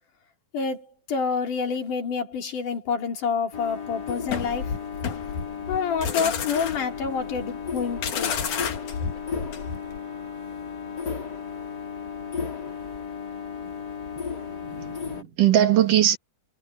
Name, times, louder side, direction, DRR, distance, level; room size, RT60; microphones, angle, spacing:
voice 1, 0.5-4.8 5.7-8.4, left 5 dB, 90° left, 4.6 m, -28 dB
sound 1, 3.5-15.2, left 6 dB, 30° left, 4.1 m, -34 dB
sound 2, 4.3-10.0, left 7 dB, 75° left, 3.5 m, -31 dB
voice 2, 14.6-16.2, right 11 dB, 85° right, 3.7 m, -21 dB
omnidirectional pair, 3.6 m